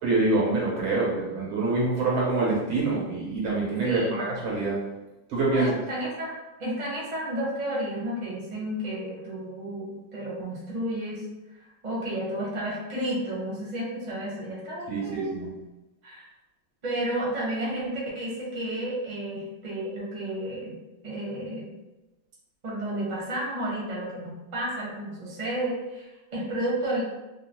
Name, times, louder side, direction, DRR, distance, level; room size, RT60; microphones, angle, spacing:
voice 1, 0.0-4.8 5.3-5.8 14.9-15.5, right 3 dB, 85° right, -4 dB, 1.8 m, -25 dB
voice 2, 3.8-4.3 5.5-6.3 6.6-11.2 11.6-15.3 16.0-16.2 16.8-20.8 21.0-21.7 22.6-27.0, right 1 dB, 35° right, -6 dB, 0.7 m, -32 dB
3.7 x 2.0 x 2.8 m, 1.0 s
omnidirectional pair, 2.1 m